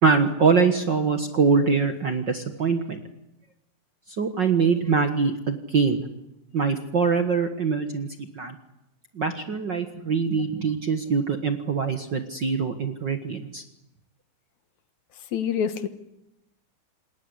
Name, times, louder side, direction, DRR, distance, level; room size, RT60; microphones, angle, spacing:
voice 1, 0.0-3.0 4.2-6.0 6.5-8.1 8.3-8.6 9.1-13.6, right 5 dB, 45° right, 7 dB, 1.6 m, -23 dB
voice 2, 15.3-15.9, left 7 dB, 65° left, 11 dB, 2.4 m, -26 dB
27.5 x 20.0 x 9.8 m, 0.87 s
omnidirectional pair, 3.8 m